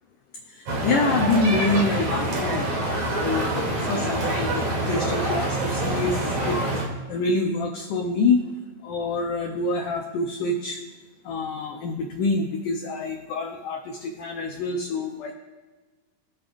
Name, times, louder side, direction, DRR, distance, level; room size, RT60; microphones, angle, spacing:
voice 1, 0.5-6.8 7.1-8.5 8.8-10.8 11.3-15.3, left 3 dB, 85° left, 2 dB, 1.8 m, -26 dB
sound 1, 0.7-6.8, right 1 dB, 45° right, 2.4 m, -26 dB
22.0 x 7.3 x 2.6 m, 1.3 s
omnidirectional pair, 4.9 m